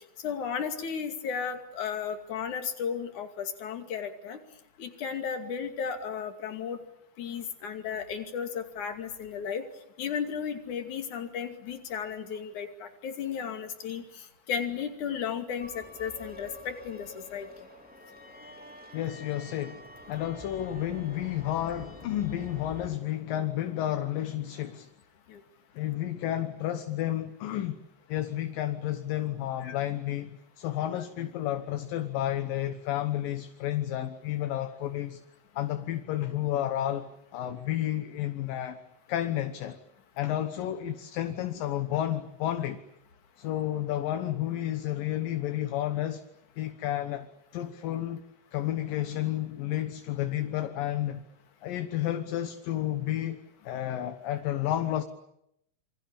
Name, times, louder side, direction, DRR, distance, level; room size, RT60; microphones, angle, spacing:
voice 1, 0.2-4.4 4.8-6.8 7.2-9.7 10.0-17.5 25.3-25.4 29.6-29.8, left 7 dB, 55° left, 3.8 m, -34 dB
sound 1, 15.6-22.9, left 1 dB, ahead, 3.5 m, -47 dB
voice 2, 18.9-24.9 25.7-27.8 28.1-35.2 35.6-38.8 39.1-39.8 40.2-42.8 43.4-46.2 46.6-47.3 47.5-48.2 48.5-51.2 51.6-53.4 53.6-55.0, left 12 dB, 70° left, 2.8 m, -31 dB
27.5 x 24.5 x 8.7 m
omnidirectional pair, 4.3 m